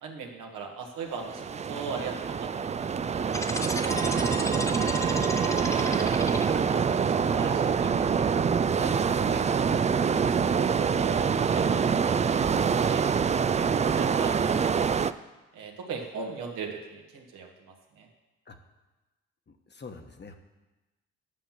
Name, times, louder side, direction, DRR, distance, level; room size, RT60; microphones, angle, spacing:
voice 1, 0.0-3.3 3.9-4.2 6.2-8.3 8.7-9.8 10.2-11.6 12.9-13.0 13.8-14.9 15.5-17.5 18.0-18.1, right 5 dB, 75° right, 1 dB, 1.8 m, -39 dB
sound 1, 1.2-15.1, right 6 dB, 20° right, 0.4 m, -25 dB
sound 2, 3.3-6.8, left 1 dB, 10° left, 1.1 m, -34 dB
voice 2, 3.9-4.8 18.5-18.6 19.5-20.4, left 3 dB, 30° left, 5 dB, 1.2 m, -46 dB
8.4 x 5.8 x 7.4 m, 1.1 s
hypercardioid pair, 55°, 33 cm